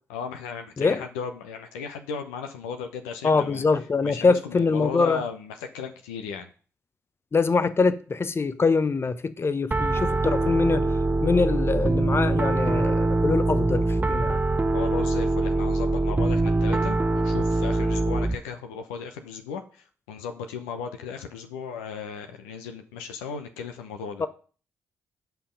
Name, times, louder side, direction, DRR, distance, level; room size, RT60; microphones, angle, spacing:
voice 1, 0.1-3.6 4.0-6.5 14.7-24.3, left 6 dB, 80° left, 0.8 m, -35 dB
voice 2, 3.2-5.2 7.3-10.9 11.2-14.4 24.2-24.3, left 4 dB, 35° left, 0.8 m, -24 dB
Piano, 9.7-18.3, right 2 dB, 20° right, 0.6 m, -23 dB
9.3 x 5.6 x 5.1 m
hypercardioid pair, 40°, 8 cm